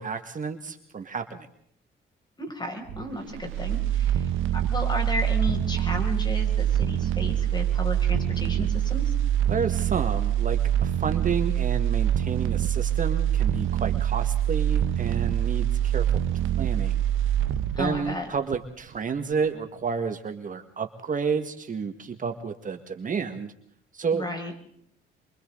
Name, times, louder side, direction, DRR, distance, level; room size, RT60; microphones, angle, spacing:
voice 1, 0.0-1.5 9.5-16.2 16.6-17.0 17.8-23.5 23.9-24.2, right 5 dB, 40° right, 6 dB, 1.8 m, -30 dB
voice 2, 2.4-9.1 17.8-18.3 24.1-24.5, left 1 dB, 20° left, 3 dB, 6.5 m, -33 dB
sound 1, 2.9-19.0 19.3-19.4, right 11 dB, 90° right, 1.0 m, -25 dB
28.0 x 24.0 x 4.0 m, 0.66 s
cardioid pair, 90°, 20 cm